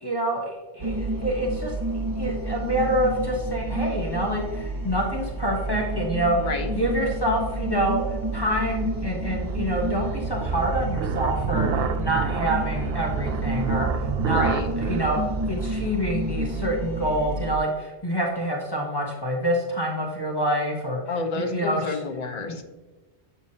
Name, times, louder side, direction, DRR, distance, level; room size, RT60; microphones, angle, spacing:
voice 1, 0.0-1.7 2.1-6.4 6.7-14.5 14.8-22.0 22.5-22.6, right 1 dB, 20° left, -2 dB, 1.2 m, -27 dB
sound 1, 0.8-17.6, right 2 dB, 25° right, 0.6 m, -30 dB
voice 2, 6.4-6.7 14.2-14.7 21.1-22.6, left 4 dB, 40° left, 4 dB, 0.8 m, -30 dB
sound 2, 7.3-16.6, right 6 dB, 65° right, 0.8 m, -31 dB
8.0 x 7.0 x 2.8 m, 1.2 s
omnidirectional pair, 1.1 m